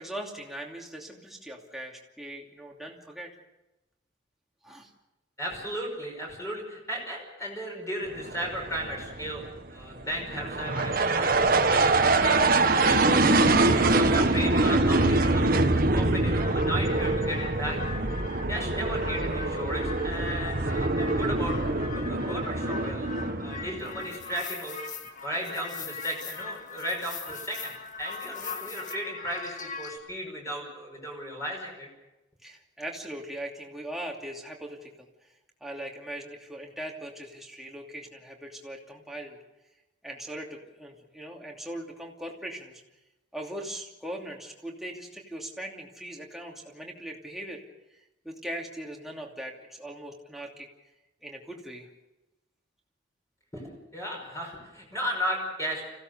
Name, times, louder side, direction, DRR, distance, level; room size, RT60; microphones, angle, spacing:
voice 1, 0.0-3.3 4.6-4.9 32.4-35.3 35.6-39.4 40.0-42.8 43.3-47.6 47.9-50.7 51.2-51.9, right 1 dB, ahead, -1 dB, 2.7 m, -40 dB
voice 2, 5.4-13.2 13.8-17.8 18.5-23.1 23.4-24.8 25.2-31.9 53.5-55.9, equal, 15° left, -1 dB, 5.7 m, -35 dB
sound 1, 8.1-24.1, right 2 dB, 50° right, 1.4 m, -24 dB
sound 2, 16.3-30.0, left 5 dB, 40° left, 1.8 m, -41 dB
26.5 x 16.5 x 6.8 m, 1.0 s
head